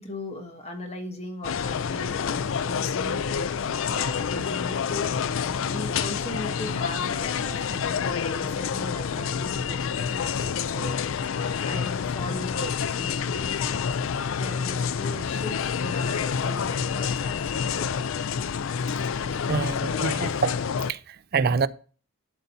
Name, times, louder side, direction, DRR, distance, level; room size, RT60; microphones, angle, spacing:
voice 1, 0.0-3.5 3.8-18.0 19.3-19.4 20.1-20.2, left 1 dB, 30° left, 1.5 m, -39 dB
sound 1, 1.4-20.9, left 6 dB, 70° left, 0.4 m, -28 dB
voice 2, 19.5-20.5 20.9-21.7, right 5 dB, 45° right, 0.4 m, -26 dB
11.5 x 4.0 x 5.5 m
head